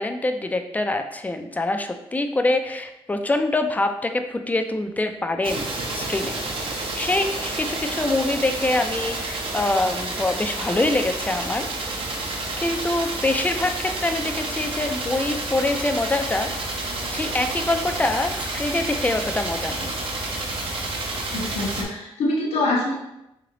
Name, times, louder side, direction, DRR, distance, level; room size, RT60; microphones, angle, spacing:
voice 1, 0.0-11.7 12.6-16.5 17.1-20.0, left 2 dB, 15° left, 6 dB, 0.4 m, -25 dB
sound 1, 5.4-21.8, right 2 dB, 55° right, 0.8 m, -30 dB
voice 2, 21.3-22.9, left 2 dB, 75° left, -3 dB, 0.9 m, -24 dB
3.2 x 2.8 x 3.8 m, 0.89 s
cardioid pair, 80°, 11 cm